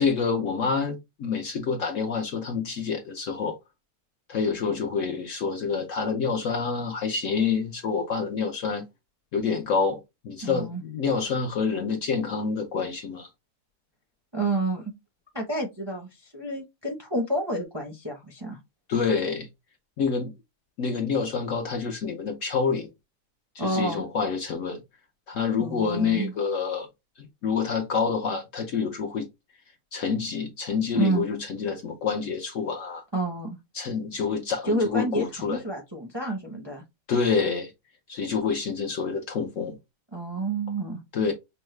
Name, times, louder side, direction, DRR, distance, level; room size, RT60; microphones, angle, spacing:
voice 1, 0.0-3.6 4.3-8.8 9.3-13.3 18.9-19.5 20.0-20.3 20.8-22.9 23.5-24.8 25.3-26.9 27.4-29.2 29.9-33.0 33.7-35.6 37.1-37.7 38.1-39.8 41.1-41.3, left 5 dB, 65° left, 0.9 m, -27 dB
voice 2, 10.4-10.8 14.3-14.8 15.3-18.6 23.6-24.0 25.6-26.3 30.9-31.2 33.1-33.6 34.6-36.8 40.1-41.0, right 2 dB, 25° right, 0.5 m, -29 dB
5.3 x 2.1 x 3.2 m
omnidirectional pair, 1.8 m